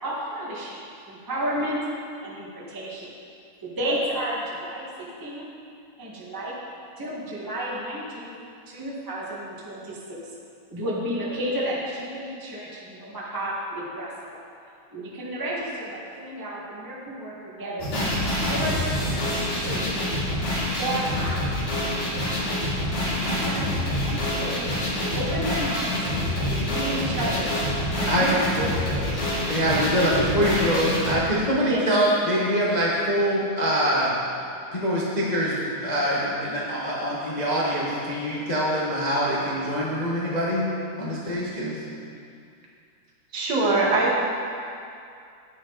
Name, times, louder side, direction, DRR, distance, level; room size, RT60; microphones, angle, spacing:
voice 1, 0.0-0.8 1.1-1.8 2.2-3.1 3.6-5.4 6.0-6.5 7.0-8.3 8.7-10.2 10.7-14.4 14.9-17.9 18.5-19.8 20.2-20.3 20.8-21.4 22.1-22.6 23.0-23.8 24.0-24.7 25.0-26.0 26.3-27.6 28.0-29.3 31.6-31.8, right 1 dB, 10° right, -7 dB, 1.0 m, -32 dB
sound 1, 17.8-31.1, left 1 dB, 80° left, 4.2 m, -26 dB
voice 2, 29.5-34.1 34.7-40.7 41.0-41.8, equal, 60° left, -6 dB, 0.4 m, -24 dB
voice 3, 43.3-44.2, right 2 dB, 65° right, -4 dB, 3.0 m, -21 dB
11.0 x 10.0 x 4.1 m, 2.5 s
omnidirectional pair, 3.4 m